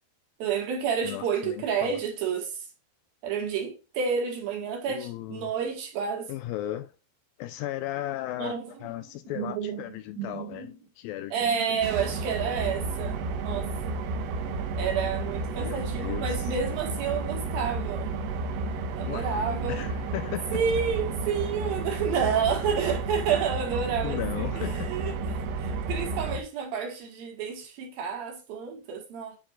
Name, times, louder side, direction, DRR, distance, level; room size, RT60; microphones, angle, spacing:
voice 1, 0.4-2.5 3.2-6.3 8.4-8.7 9.4-9.8 10.2-10.7 11.3-13.2 13.4-14.0 14.8-18.1 18.9-19.9 20.5-25.1 25.6-29.4, right 7 dB, 70° right, 3.4 m, -30 dB
voice 2, 1.0-2.0 4.9-5.5 6.3-6.9 7.4-11.8 15.5-16.5 19.1-20.6 24.0-25.0, left 13 dB, 80° left, 2.2 m, -36 dB
sound 1, 11.8-26.4, right 3 dB, 85° right, 3.0 m, -32 dB
10.0 x 4.3 x 2.4 m
omnidirectional pair, 4.5 m